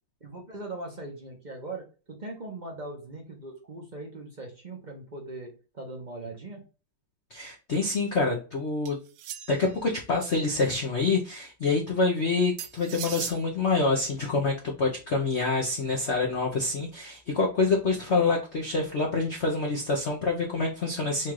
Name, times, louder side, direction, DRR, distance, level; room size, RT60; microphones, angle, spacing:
voice 1, 0.2-6.6, right 2 dB, 45° right, 0 dB, 0.5 m, -40 dB
voice 2, 7.3-9.0 9.5-21.3, left 3 dB, 75° left, 0 dB, 0.6 m, -26 dB
sound 1, 8.8-9.8 12.6-13.4, right 11 dB, 80° right, 0.9 m, -38 dB
4.5 x 2.4 x 4.6 m, 0.34 s
omnidirectional pair, 2.3 m